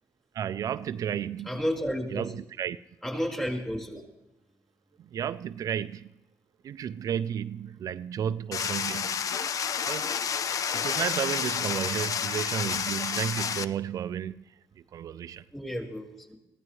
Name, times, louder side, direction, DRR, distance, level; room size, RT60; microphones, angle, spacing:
voice 1, 0.3-1.5 2.1-2.8 5.1-6.1 6.6-9.3 9.9-10.1 10.5-14.5 14.9-15.4, right 9 dB, 65° right, 0.4 m, -32 dB
voice 2, 1.4-2.3 3.0-4.0 15.5-16.4, equal, 10° left, 5.1 m, -32 dB
sound 1, 8.5-13.6, left 7 dB, 60° left, 0.6 m, -30 dB
22.0 x 15.5 x 3.2 m
cardioid pair, 80°, 7 cm